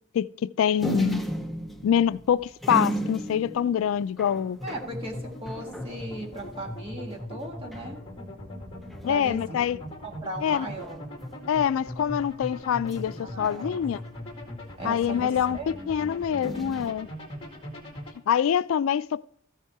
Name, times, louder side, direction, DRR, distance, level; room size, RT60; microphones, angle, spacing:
voice 1, 0.1-1.2 1.8-4.6 9.0-9.8 10.4-10.7 11.5-14.0 14.8-17.1 18.3-19.2, left 8 dB, 75° left, 0.3 m, -25 dB
sound 1, 0.8-6.8 7.1-7.2 7.4-7.9 8.8-9.4 10.8-11.3 12.9-14.2 16.4-16.9, right 1 dB, ahead, 0.6 m, -35 dB
sound 2, 4.6-18.1, left 1 dB, 25° left, 2.2 m, -40 dB
voice 2, 4.6-8.0 9.1-9.6 10.0-11.0 13.2-13.8 14.8-15.9, right 1 dB, 30° right, 1.6 m, -38 dB
14.5 x 5.7 x 4.6 m
head